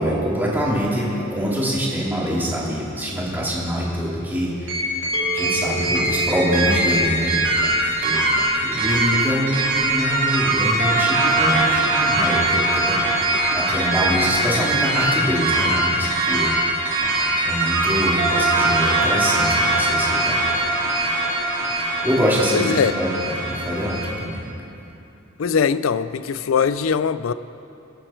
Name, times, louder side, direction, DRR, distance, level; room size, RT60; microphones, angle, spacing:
voice 1, 0.0-7.5 7.8-13.0 13.5-16.5 17.4-20.4 22.0-24.4, equal, 10° right, -6 dB, 3.1 m, -25 dB
sound 1, 4.7-24.1, right 2 dB, 65° right, 3.6 m, -21 dB
sound 2, 5.1-8.8, right 5 dB, 80° right, 2.0 m, -33 dB
voice 2, 22.5-22.9 25.4-27.3, left 6 dB, 75° left, 14 dB, 0.4 m, -21 dB
25.5 x 8.9 x 4.5 m, 2.7 s
head